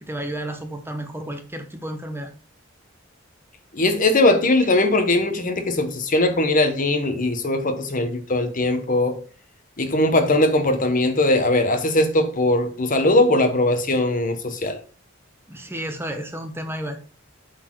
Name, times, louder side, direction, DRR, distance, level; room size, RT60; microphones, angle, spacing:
voice 1, 0.0-2.3 15.5-17.0, right 1 dB, 10° right, 0.9 m, -32 dB
voice 2, 3.7-9.2 9.8-14.8, left 2 dB, 40° left, 1.1 m, -20 dB
7.9 x 4.2 x 4.6 m
head